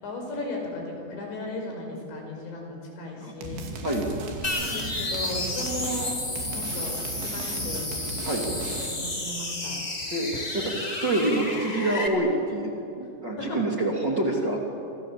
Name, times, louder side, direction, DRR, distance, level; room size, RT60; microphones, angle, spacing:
voice 1, 0.0-3.7 4.6-6.1 6.5-7.9 8.4-8.5 8.9-10.5 13.4-13.6, left 2 dB, 80° left, 1 dB, 7.4 m, -36 dB
sound 1, 3.4-9.2, right 3 dB, 80° right, 4.9 m, -37 dB
sound 2, 4.4-12.1, left 2 dB, 35° left, 0.6 m, -32 dB
voice 2, 10.1-12.7 13.0-14.6, right 1 dB, 30° right, -1 dB, 2.5 m, -26 dB
28.0 x 25.5 x 7.5 m, 2.8 s
omnidirectional pair, 5.1 m